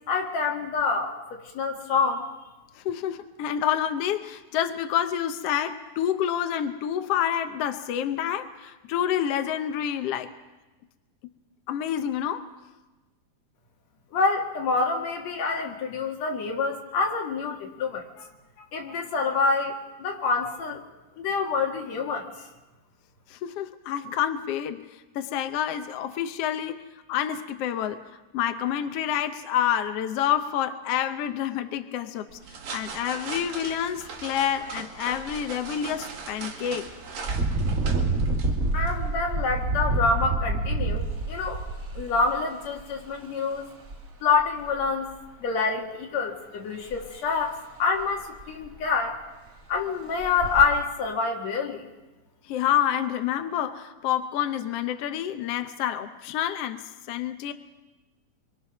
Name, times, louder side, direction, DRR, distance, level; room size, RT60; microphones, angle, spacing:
voice 1, 0.1-2.2 14.1-18.3 18.7-20.8 21.2-22.3 38.7-41.6 41.9-43.7 44.2-45.1 45.4-49.2 49.7-51.9, left 4 dB, 55° left, 3.1 m, -27 dB
voice 2, 2.8-10.3 11.7-12.5 23.3-24.8 25.1-26.8 27.1-28.0 28.3-32.3 32.7-36.9 52.5-57.5, left 10 dB, 75° left, 1.4 m, -28 dB
sound 1, 32.3-39.2, right 5 dB, 80° right, 3.9 m, -40 dB
Engine, 35.1-35.3 35.8-36.0 37.2-43.0 43.8-44.0 44.4-45.1 46.9-47.0 47.4-47.5 48.0-48.1 48.4-48.9 49.5-49.6 50.2-50.6, right 2 dB, 35° right, 1.4 m, -28 dB
27.0 x 24.0 x 6.0 m
omnidirectional pair, 3.8 m